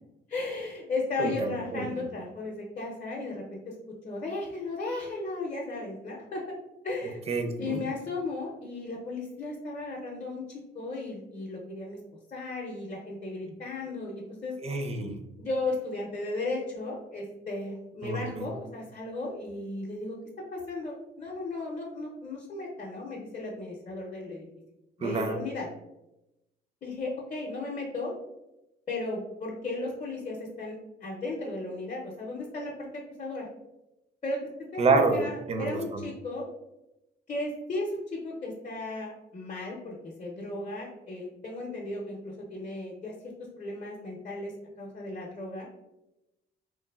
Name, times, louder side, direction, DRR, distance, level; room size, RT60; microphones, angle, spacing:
voice 1, 0.3-3.7 4.0-6.4 6.8-7.2 7.6-12.0 12.3-14.6 15.4-20.2 20.5-24.5 25.0-25.7 26.8-28.1 28.9-32.9 33.2-33.5 34.2-36.5 37.3-43.1 43.4-44.5 44.8-45.7, left 2 dB, 35° left, -3 dB, 0.6 m, -35 dB
voice 2, 1.2-1.8 7.3-7.8 14.6-15.1 18.0-18.4 25.0-25.3 34.8-35.2 35.5-36.0, right 3 dB, 30° right, 5 dB, 0.4 m, -27 dB
3.0 x 2.1 x 2.3 m, 0.92 s
cardioid pair, 90°, 20 cm